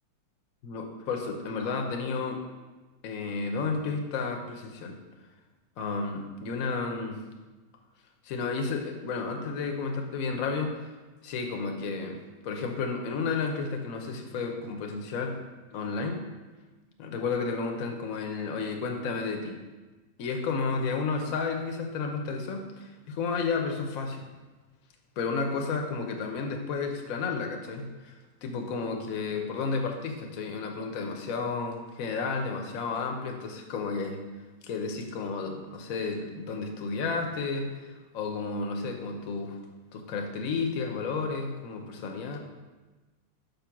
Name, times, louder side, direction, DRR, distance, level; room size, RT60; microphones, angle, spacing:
voice 1, 0.6-2.4 3.0-5.0 5.8-7.2 8.2-10.8 11.2-15.4 15.7-16.2 17.0-19.6 20.2-24.3 25.2-34.2 34.6-39.6 39.9-42.4, left 4 dB, 55° left, 3 dB, 1.1 m, -32 dB
5.3 x 5.2 x 5.8 m, 1.2 s
omnidirectional pair, 1.9 m